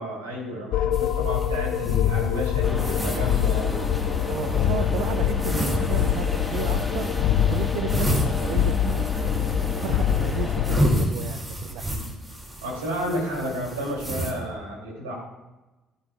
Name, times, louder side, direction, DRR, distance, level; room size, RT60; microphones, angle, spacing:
voice 1, 0.0-3.8 12.6-15.2, equal, 85° right, -2 dB, 2.9 m, -31 dB
sound 1, 0.7-11.0, left 10 dB, 65° left, 0.4 m, -25 dB
sound 2, 0.9-14.3, right 1 dB, 15° right, 2.6 m, -32 dB
sound 3, 2.6-10.8, left 2 dB, 5° left, 1.7 m, -31 dB
voice 2, 4.3-7.1 7.5-9.1 9.5-12.1, right 10 dB, 65° right, 9 dB, 0.5 m, -34 dB
14.5 x 10.0 x 2.4 m, 1.1 s
hypercardioid pair, 50°, 0 cm